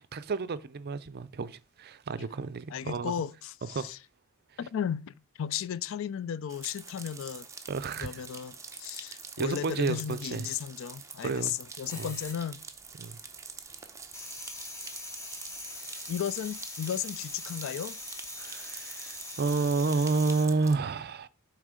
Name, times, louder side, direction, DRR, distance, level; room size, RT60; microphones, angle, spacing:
voice 1, 0.1-3.1 3.7-3.9 7.7-8.2 9.4-10.5 11.2-11.5 11.9-12.1 13.0-13.2 18.4-21.3, right 4 dB, 50° right, 0.5 m, -30 dB
voice 2, 2.7-4.0 4.6-7.5 8.0-12.6 16.1-18.0, left 8 dB, 65° left, 0.3 m, -35 dB
sound 1, 6.5-20.7, right 5 dB, 15° right, 0.7 m, -46 dB
sound 2, 11.9-13.1 13.4-20.4, left 2 dB, 15° left, 1.1 m, -42 dB
7.3 x 3.2 x 5.0 m
head